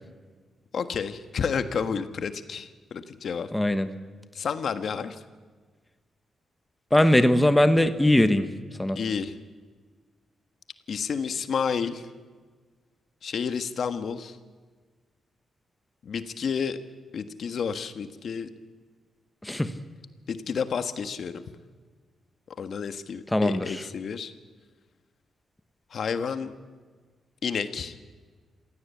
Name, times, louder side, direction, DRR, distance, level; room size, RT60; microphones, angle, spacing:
voice 1, 0.7-3.5 4.3-5.2 8.9-9.3 10.9-12.1 13.2-14.4 16.0-16.8 17.1-18.5 20.3-21.3 22.6-24.3 25.9-26.5 27.4-28.0, left 6 dB, 60° left, 9 dB, 1.5 m, -30 dB
voice 2, 3.5-3.9 6.9-8.5 8.8-9.0 19.4-19.7 23.3-23.7, left 1 dB, 10° left, 9 dB, 1.2 m, -20 dB
27.0 x 16.5 x 8.5 m, 1.4 s
wide cardioid pair, 125°, 0 cm